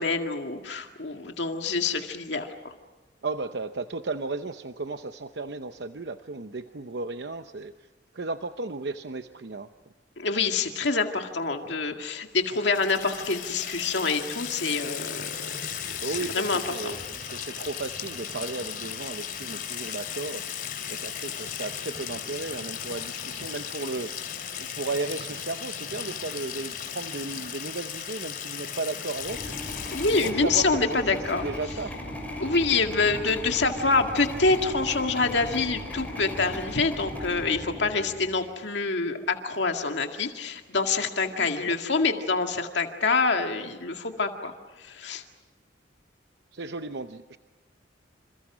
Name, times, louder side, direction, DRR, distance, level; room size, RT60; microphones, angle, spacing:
voice 1, 0.0-2.7 10.2-15.3 16.0-16.9 29.9-31.5 32.4-44.5 44.8-45.2, left 4 dB, 80° left, 4 dB, 2.0 m, -26 dB
voice 2, 3.2-7.7 8.1-9.7 16.0-20.5 20.9-24.1 24.6-29.4 30.1-31.9 41.3-41.8 46.5-47.4, right 3 dB, 65° right, 8 dB, 0.8 m, -35 dB
Water tap faucet / Sink (filling or washing), 12.4-30.3, left 8 dB, 50° left, 3.3 m, -36 dB
sound 1, 29.1-38.5, left 1 dB, 10° left, 6.4 m, -37 dB
27.5 x 27.5 x 6.2 m, 1.2 s
head